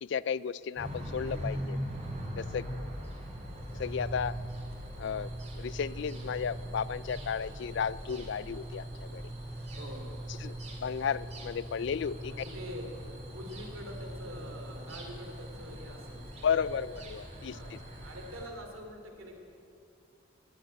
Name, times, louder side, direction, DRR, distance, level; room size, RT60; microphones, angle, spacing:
voice 1, 0.0-1.8 2.4-2.7 3.7-4.4 5.0-9.2 10.4-12.3 16.4-17.8, left 7 dB, 60° left, 19 dB, 0.3 m, -34 dB
sound 1, 0.8-18.5, equal, 35° right, 2.1 m, -41 dB
voice 2, 2.5-2.9 9.7-10.1 12.3-12.8 13.3-16.4 17.5-19.4, equal, 90° right, 3 dB, 2.7 m, -45 dB
14.5 x 9.2 x 9.9 m, 2.5 s
head